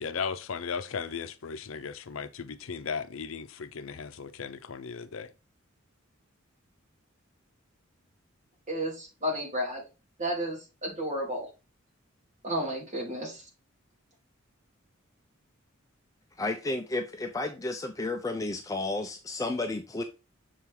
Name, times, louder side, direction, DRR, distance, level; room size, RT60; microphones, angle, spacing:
voice 1, 0.0-5.3, left 6 dB, 75° left, 0.6 m, -36 dB
voice 2, 8.7-9.8 10.2-11.5 12.4-13.4, equal, 35° right, 3.2 m, -32 dB
voice 3, 16.4-20.0, left 2 dB, 15° left, 0.4 m, -32 dB
6.6 x 4.6 x 3.7 m
head